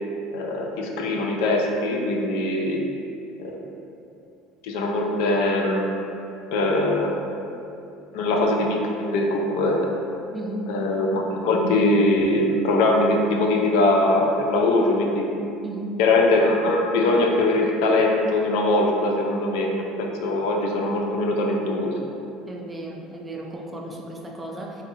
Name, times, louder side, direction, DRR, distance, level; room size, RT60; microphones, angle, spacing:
voice 1, 0.3-2.8 3.4-3.6 4.6-6.0 6.5-7.1 8.1-10.0 10.7-15.2 16.0-21.9, left 2 dB, 75° left, 1 dB, 0.3 m, -22 dB
voice 2, 10.3-10.7 15.6-16.0 22.5-24.8, right 2 dB, 15° right, 0 dB, 0.3 m, -34 dB
2.8 x 2.3 x 2.7 m, 2.7 s
supercardioid pair, 105°, 0 cm